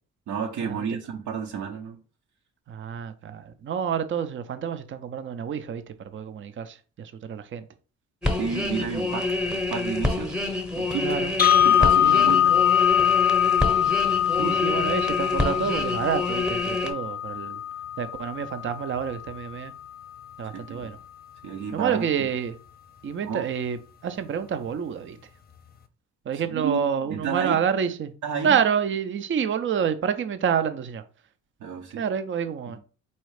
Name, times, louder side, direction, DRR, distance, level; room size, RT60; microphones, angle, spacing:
voice 1, 0.3-2.0 8.4-10.4 10.8-11.1 11.6-12.6 14.4-14.8 20.5-20.9 21.4-22.1 23.3-23.4 26.5-27.6 28.2-28.6 31.6-32.0 32.7-32.8, right 6 dB, 75° right, 0.9 m, -31 dB
voice 2, 2.7-7.7 11.0-11.3 12.0-12.3 14.4-17.6 18.0-19.7 20.4-21.0 21.7-22.6 23.0-25.2 26.3-28.1 28.4-31.0 32.0-32.8, right 7 dB, 40° right, 0.6 m, -28 dB
sound 1, 8.2-16.9, left 2 dB, 5° right, 0.9 m, -27 dB
sound 2, 11.4-19.4, left 10 dB, 30° left, 0.6 m, -23 dB
4.2 x 2.4 x 4.8 m
cardioid pair, 90°, 30 cm